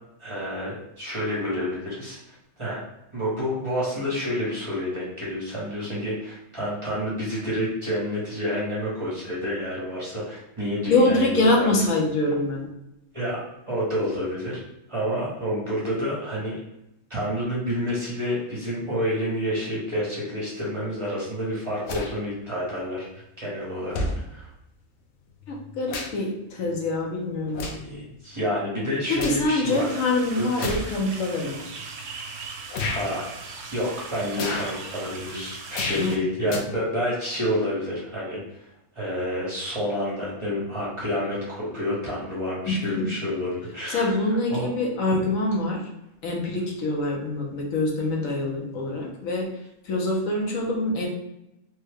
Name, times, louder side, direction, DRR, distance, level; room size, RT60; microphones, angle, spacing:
voice 1, 0.2-2.8 3.1-11.7 13.1-14.6 14.9-16.5 17.1-24.5 27.7-29.9 30.3-30.7 32.9-33.3 33.7-38.7 38.9-44.1 44.5-44.7 45.1-45.2, equal, 25° right, -7 dB, 0.8 m, -29 dB
voice 2, 10.9-12.6 25.5-27.7 29.1-31.6 35.9-36.2 42.7-43.1 43.9-45.8 46.2-49.5 49.8-51.1, left 2 dB, 85° left, -1 dB, 1.2 m, -25 dB
sound 1, 21.8-22.1 23.2-23.3 23.9-24.2 25.4-26.3 26.7-26.9 27.5-27.9 28.4-29.5 30.6-30.9 31.6-31.7 32.7-33.0 34.3-34.8 35.7-36.1 36.4-36.6, left 3 dB, 65° left, 0.8 m, -31 dB
sound 2, 29.6-36.2, right 4 dB, 70° right, 0.8 m, -39 dB
3.3 x 2.2 x 3.4 m, 0.86 s
omnidirectional pair, 1.4 m